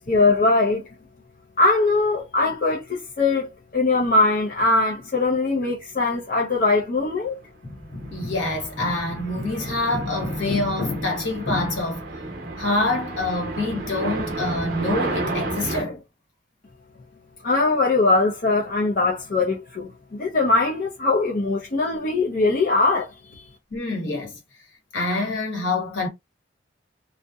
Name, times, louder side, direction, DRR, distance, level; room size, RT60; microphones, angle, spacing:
voice 1, 0.1-0.8 1.6-7.4 17.4-23.4, left 3 dB, 45° left, 0.5 m, -21 dB
voice 2, 7.6-12.0 12.6-16.0 23.7-24.4 24.9-26.1, left 2 dB, 65° left, 1.1 m, -26 dB
sound 1, 8.0-15.8, right 2 dB, 50° right, 0.7 m, -32 dB
2.7 x 2.1 x 2.3 m
head